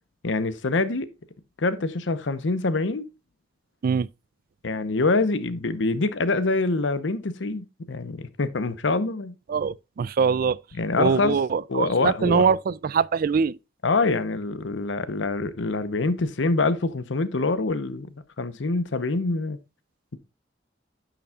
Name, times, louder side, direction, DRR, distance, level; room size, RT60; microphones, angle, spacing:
voice 1, 0.2-1.1 1.6-3.1 4.6-9.3 10.8-11.4 11.7-12.5 13.8-19.6, left 3 dB, 90° left, 0.8 m, -25 dB
voice 2, 9.5-10.6 11.0-13.6, right 6 dB, 50° right, 0.3 m, -23 dB
10.0 x 7.0 x 2.3 m
head